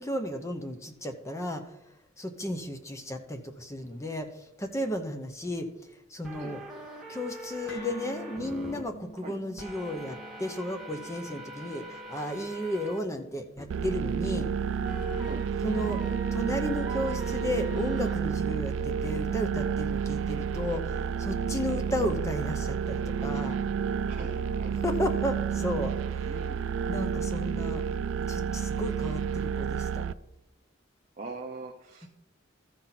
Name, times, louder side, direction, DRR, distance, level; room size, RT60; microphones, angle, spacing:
voice 1, 0.0-1.7 2.2-5.7 6.1-6.6 7.1-14.5 15.6-16.0 16.3-23.6 24.8-26.3 26.9-27.8 28.3-30.1, left 1 dB, 15° left, 6 dB, 0.7 m, -33 dB
sound 1, 6.2-8.8 9.6-13.0 13.6-13.7 14.8-26.0, right 1 dB, ahead, 1.2 m, -43 dB
sound 2, 7.7-15.8, right 1 dB, 65° left, 1.3 m, -49 dB
sound 3, 13.7-30.1, right 7 dB, 70° right, 0.3 m, -30 dB
voice 2, 24.1-24.8 26.2-26.6 31.2-32.1, right 3 dB, 35° right, 0 dB, 0.8 m, -42 dB
14.0 x 5.9 x 4.0 m, 0.96 s
head